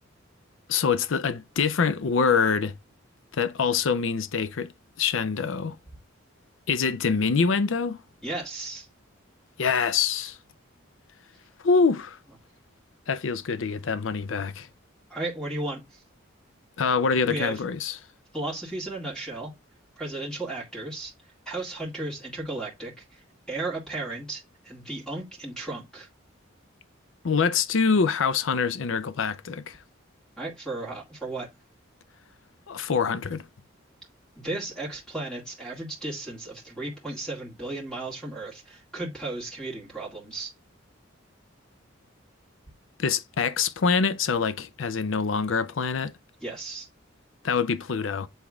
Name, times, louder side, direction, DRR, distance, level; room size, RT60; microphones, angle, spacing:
voice 1, 0.7-2.7 3.3-4.7 5.0-5.8 6.7-8.0 9.6-10.4 11.6-12.2 13.1-14.7 16.8-18.0 27.2-29.8 32.7-33.4 43.0-46.1 47.4-48.3, left 5 dB, 70° left, 0.5 m, -25 dB
voice 2, 8.2-8.9 15.1-16.0 17.2-17.6 18.3-19.5 20.0-21.1 21.5-26.1 30.4-31.5 34.4-40.5 46.4-46.9, right 2 dB, 5° left, 2.0 m, -35 dB
8.0 x 3.6 x 3.5 m
head